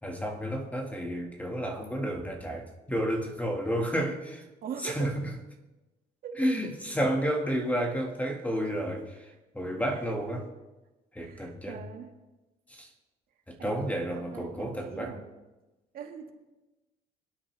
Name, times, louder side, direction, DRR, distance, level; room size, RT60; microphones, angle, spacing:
voice 1, 0.0-4.5 4.8-5.3 6.4-10.4 11.1-11.8 12.7-12.9 13.5-15.2, equal, 10° left, 2 dB, 1.8 m, -31 dB
voice 2, 4.6-5.2 6.2-6.7 10.3-10.4 11.2-12.1 13.6-15.3 15.9-16.3, right 7 dB, 60° right, 3 dB, 1.9 m, -41 dB
25.5 x 8.7 x 3.4 m, 1.1 s
cardioid pair, 110°, 17 cm